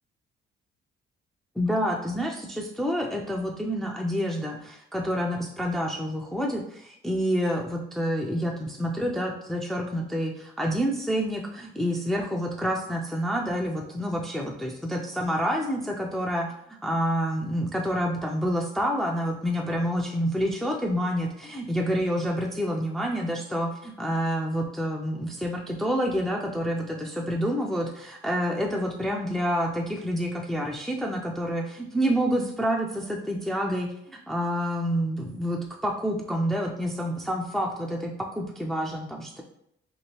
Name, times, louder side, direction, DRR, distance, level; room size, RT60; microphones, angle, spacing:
voice 1, 1.6-16.5 16.8-39.4, equal, ahead, 0 dB, 0.4 m, -28 dB
2.9 x 2.6 x 2.9 m, 0.75 s
cardioid pair, 90°, 20 cm